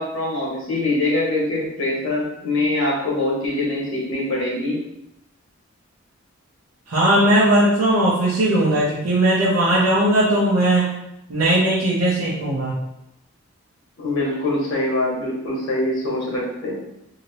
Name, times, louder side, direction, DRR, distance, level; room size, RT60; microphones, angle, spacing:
voice 1, 0.0-4.8 14.0-16.7, left 2 dB, 60° left, -4 dB, 1.1 m, -23 dB
voice 2, 6.9-10.9 11.3-12.8, right 1 dB, 85° right, -9 dB, 0.8 m, -18 dB
2.8 x 2.8 x 3.0 m, 0.85 s
head